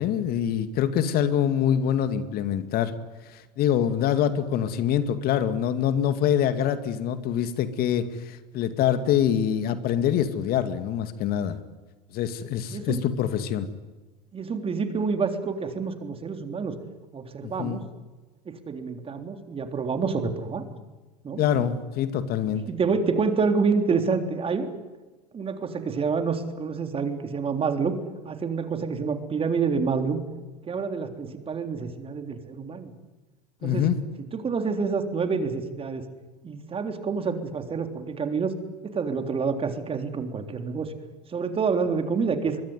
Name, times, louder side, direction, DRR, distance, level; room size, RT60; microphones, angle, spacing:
voice 1, 0.0-2.9 3.3-11.6 12.1-13.7 17.4-17.8 21.4-22.6 33.6-34.0, left 9 dB, 45° left, 11 dB, 2.2 m, -25 dB
voice 2, 14.3-16.8 17.1-17.8 18.5-20.6 21.2-21.4 22.7-24.7 25.3-27.9 28.2-30.2 30.6-32.9 33.6-33.8 34.3-36.0 36.4-38.6 38.8-40.9 41.3-42.7, right 5 dB, 25° right, 7 dB, 3.6 m, -27 dB
24.5 x 22.5 x 9.7 m, 1.2 s
hypercardioid pair, 80°, 21 cm